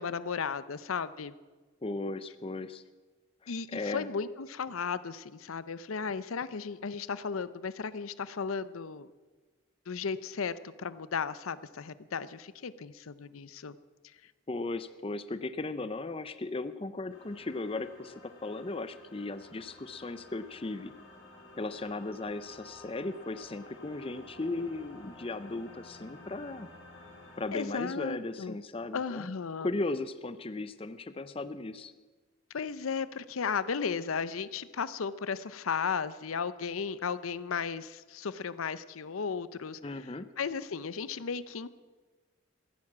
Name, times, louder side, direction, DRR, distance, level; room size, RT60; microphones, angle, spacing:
voice 1, 0.0-1.3 3.5-9.1 9.9-13.8 27.5-28.6 28.9-29.7 32.5-39.8 40.4-41.7, left 5 dB, 90° left, 16 dB, 0.6 m, -35 dB
voice 2, 1.8-2.8 3.4-4.1 14.5-20.9 21.6-26.7 27.0-27.1 27.4-29.3 29.6-31.9 39.8-40.3, left 2 dB, 25° left, 13 dB, 0.6 m, -36 dB
sound 1, 17.1-27.6, left 2 dB, 60° left, 4.3 m, -52 dB
15.0 x 11.0 x 7.4 m, 1.3 s
head